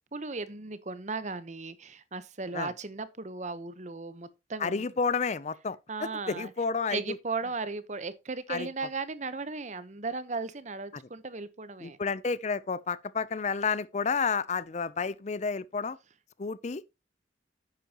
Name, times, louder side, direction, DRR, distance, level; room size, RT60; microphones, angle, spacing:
voice 1, 0.1-4.8 5.9-6.5 6.9-12.0, right 3 dB, 40° right, 0.9 m, -36 dB
voice 2, 4.6-7.2 8.5-8.7 11.8-16.0 16.4-16.8, left 5 dB, 40° left, 0.5 m, -31 dB
10.5 x 8.5 x 2.9 m
head